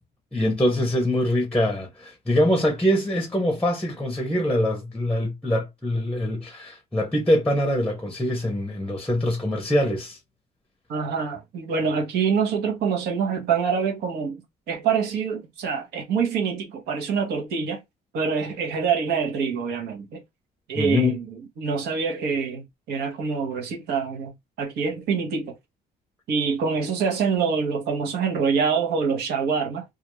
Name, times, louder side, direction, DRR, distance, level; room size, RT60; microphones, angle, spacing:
voice 1, 0.3-10.2 20.8-21.2, left 1 dB, 5° left, 0.7 m, -24 dB
voice 2, 10.9-17.8 18.1-20.2 20.7-25.6 26.3-29.8, right 6 dB, 75° right, 1.0 m, -25 dB
2.4 x 2.4 x 3.0 m
cardioid pair, 110°, 17 cm